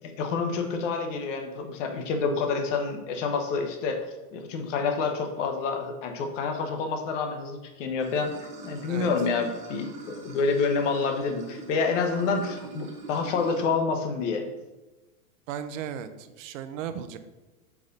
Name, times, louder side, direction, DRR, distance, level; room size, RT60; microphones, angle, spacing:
voice 1, 0.0-4.1 4.3-14.5, left 4 dB, 55° left, 5 dB, 1.1 m, -28 dB
Water / Sink (filling or washing), 8.0-13.7, right 3 dB, 15° right, 0.8 m, -42 dB
voice 2, 15.5-17.2, right 9 dB, 60° right, 11 dB, 0.7 m, -36 dB
4.8 x 4.0 x 5.2 m, 1.1 s
supercardioid pair, 150°, 44 cm